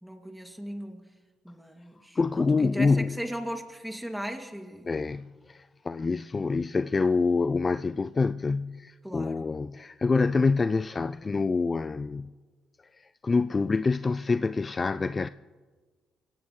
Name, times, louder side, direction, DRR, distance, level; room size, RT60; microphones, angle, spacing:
voice 1, 0.0-1.1 1.4-4.9 9.0-9.4, equal, 5° right, 2.5 m, -37 dB
voice 2, 2.2-3.2 4.9-12.3 13.2-15.3, left 4 dB, 35° left, 0.4 m, -26 dB
25.0 x 16.5 x 3.2 m
supercardioid pair, 60°, 0 cm